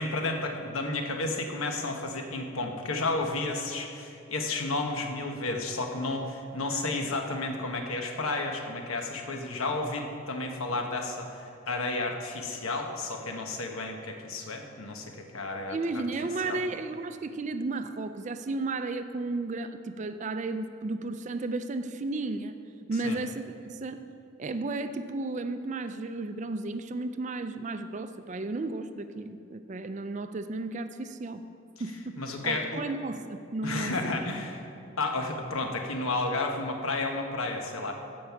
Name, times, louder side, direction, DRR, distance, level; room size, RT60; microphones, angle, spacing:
voice 1, 0.0-15.8 16.4-16.6 23.0-23.2 32.2-32.8 33.6-34.6 35.0-37.9, left 2 dB, 90° left, 3 dB, 1.2 m, -32 dB
voice 2, 15.7-22.6 22.9-24.0 24.4-31.4 31.8-34.0, right 2 dB, 35° right, 10 dB, 0.4 m, -33 dB
15.0 x 5.4 x 5.9 m, 2.6 s
head